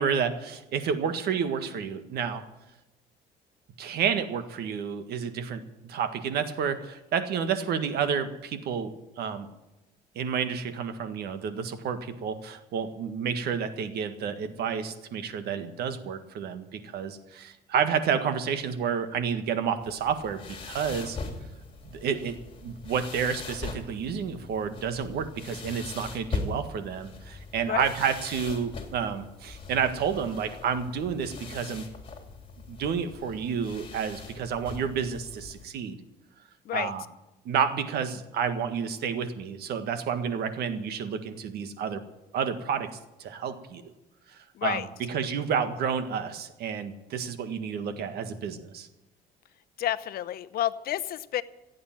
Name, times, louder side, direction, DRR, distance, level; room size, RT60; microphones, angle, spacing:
voice 1, 0.0-2.4 3.8-5.6 5.9-8.9 9.2-9.5 10.1-21.2 21.9-31.9 32.7-36.0 36.7-37.0 37.4-42.0 42.3-42.9 43.2-43.8 44.6-44.8 45.1-48.9, right 7 dB, 70° right, 9 dB, 1.7 m, -30 dB
sound 1, 19.8-35.7, left 4 dB, 30° left, 3.2 m, -41 dB
voice 2, 44.5-44.9 49.8-51.4, left 12 dB, 60° left, 15 dB, 0.8 m, -30 dB
16.0 x 8.7 x 9.1 m, 1.0 s
cardioid pair, 110°, 17 cm